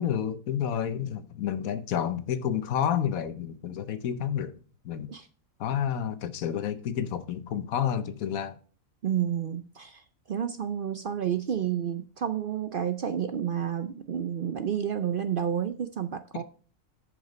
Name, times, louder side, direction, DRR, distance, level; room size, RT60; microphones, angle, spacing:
voice 1, 0.0-4.6 4.8-5.1 5.6-8.6 16.3-16.4, left 9 dB, 85° left, 1.2 m, -30 dB
voice 2, 9.0-10.0 10.3-16.4, right 9 dB, 60° right, 0.5 m, -30 dB
9.8 x 5.1 x 5.0 m
omnidirectional pair, 1.4 m